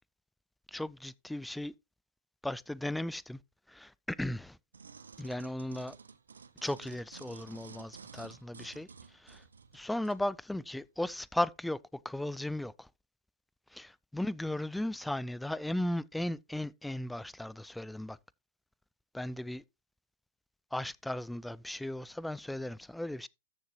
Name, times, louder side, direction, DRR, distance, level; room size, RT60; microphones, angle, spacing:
voice 1, 0.7-1.7 2.4-3.4 3.7-4.6 5.2-6.0 6.6-8.9 9.1-9.4 9.7-11.8 12.0-12.9 13.7-18.2 19.1-19.6 20.7-23.3, left 1 dB, 5° left, 0.4 m, -36 dB
sound 1, 4.7-10.2 10.8-10.9, right 5 dB, 80° right, 0.7 m, -52 dB
13.5 x 6.5 x 2.9 m
figure-of-eight pair, 100°, 0 cm